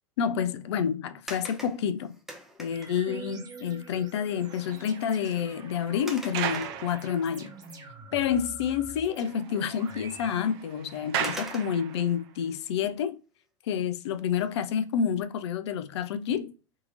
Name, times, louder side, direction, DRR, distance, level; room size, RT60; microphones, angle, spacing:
voice 1, 0.2-2.1 2.6-7.5 8.1-13.2 13.7-16.5, left 8 dB, 55° left, 0.5 m, -29 dB
sound 1, 1.3-3.1 4.3-4.4 4.8-5.0 6.1-7.2 7.8-7.9 10.3-10.4 11.2-12.0 14.2-14.6 15.1-15.2, equal, ahead, 0.7 m, -43 dB
sound 2, 2.7-10.4, right 4 dB, 25° right, 0.9 m, -46 dB
sound 3, 4.2-7.7 8.2-8.3 8.7-8.8 9.1-12.3, right 9 dB, 50° right, 0.5 m, -37 dB
3.7 x 2.8 x 2.4 m
figure-of-eight pair, 85°, 17 cm